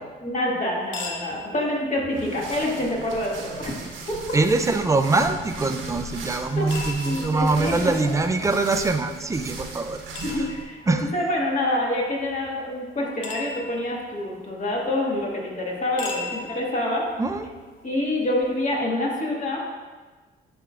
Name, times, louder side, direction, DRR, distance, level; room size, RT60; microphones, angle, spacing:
voice 1, 0.2-3.9 4.3-4.4 6.6-6.7 7.0-8.1 10.2-17.1 17.8-19.6, left 1 dB, 40° left, -3 dB, 1.7 m, -27 dB
sound 1, 0.8-18.8, left 4 dB, 90° left, 0.8 m, -42 dB
sound 2, 2.1-10.6, right 3 dB, 80° right, 1.1 m, -37 dB
voice 2, 4.3-10.0 10.3-10.5 10.9-11.1 17.2-17.5, right 3 dB, 15° right, 7 dB, 0.5 m, -23 dB
10.5 x 4.4 x 2.5 m, 1.3 s
cardioid pair, 90°, 20 cm